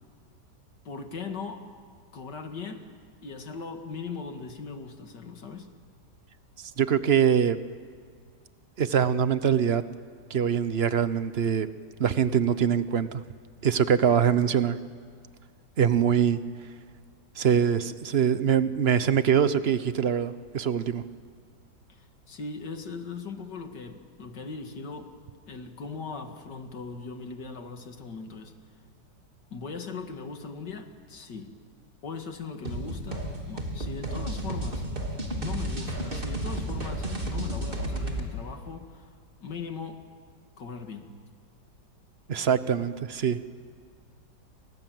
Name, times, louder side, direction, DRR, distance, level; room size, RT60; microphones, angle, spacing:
voice 1, 0.8-1.7 2.1-2.9 3.2-5.7 21.9-25.1 25.5-28.5 29.5-31.5 32.0-34.9 35.4-39.1 39.4-40.0 40.6-41.1, left 4 dB, 70° left, 6 dB, 2.6 m, -39 dB
voice 2, 6.6-7.6 8.8-9.8 10.3-11.7 12.0-13.2 13.6-14.8 15.8-16.4 17.4-21.0 42.3-43.5, right 8 dB, 45° right, 13 dB, 0.9 m, -23 dB
sound 1, 32.6-38.3, right 1 dB, 30° right, 3.2 m, -32 dB
30.0 x 25.0 x 7.8 m, 2.1 s
omnidirectional pair, 2.0 m